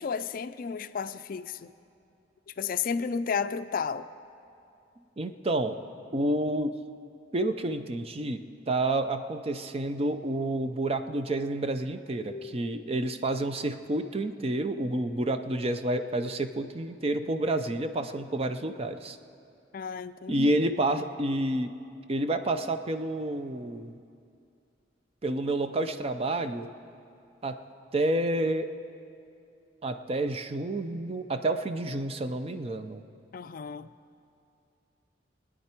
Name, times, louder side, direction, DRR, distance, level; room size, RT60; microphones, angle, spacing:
voice 1, 0.0-1.7 2.5-4.1 12.3-12.6 19.7-20.6 33.3-33.9, left 6 dB, 50° left, 12 dB, 0.4 m, -33 dB
voice 2, 5.2-5.8 6.1-6.7 7.3-19.2 20.3-21.7 22.1-24.0 25.2-26.7 27.4-27.6 27.9-28.7 29.8-33.0, right 1 dB, 30° right, 9 dB, 0.5 m, -29 dB
23.5 x 9.5 x 4.5 m, 2.5 s
head